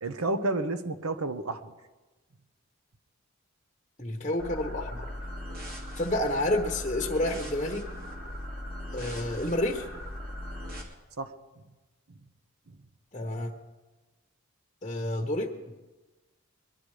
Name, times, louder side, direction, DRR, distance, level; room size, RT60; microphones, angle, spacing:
voice 1, 0.0-1.7 11.2-11.3, right 2 dB, 80° right, 10 dB, 1.0 m, -30 dB
voice 2, 4.0-5.1 5.9-7.9 8.9-9.9 13.1-13.5 14.8-15.5, left 1 dB, 25° left, 1 dB, 1.1 m, -29 dB
sound 1, 4.4-10.8, left 1 dB, 40° right, 2.6 m, -39 dB
22.0 x 12.0 x 4.9 m, 1.2 s
head